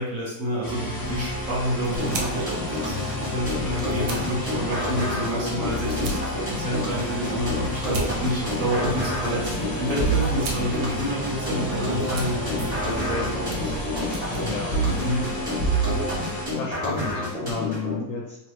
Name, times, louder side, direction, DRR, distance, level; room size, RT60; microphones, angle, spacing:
voice 1, 0.0-13.7 15.0-15.3, equal, 50° right, -5 dB, 1.2 m, -29 dB
sound 1, 0.6-16.5, left 1 dB, 40° left, 0.7 m, -31 dB
sound 2, 1.0-15.6, right 3 dB, 85° right, 1.4 m, -41 dB
sound 3, 2.0-18.0, equal, 25° right, 1.4 m, -29 dB
voice 2, 14.4-15.5 16.0-18.4, left 4 dB, 85° left, -2 dB, 0.7 m, -33 dB
3.2 x 2.9 x 3.0 m, 0.79 s
omnidirectional pair, 1.9 m